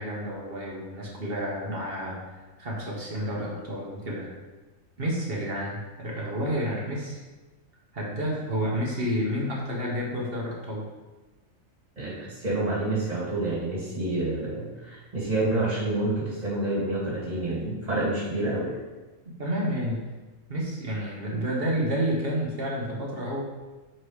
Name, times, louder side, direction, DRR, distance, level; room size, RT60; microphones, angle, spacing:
voice 1, 0.0-4.3 5.0-7.2 7.9-10.8 19.4-20.0 20.5-23.4, equal, 45° right, -3 dB, 1.3 m, -30 dB
voice 2, 12.0-18.8, right 2 dB, 30° right, -6 dB, 2.4 m, -28 dB
4.7 x 4.5 x 4.9 m, 1.2 s
omnidirectional pair, 1.4 m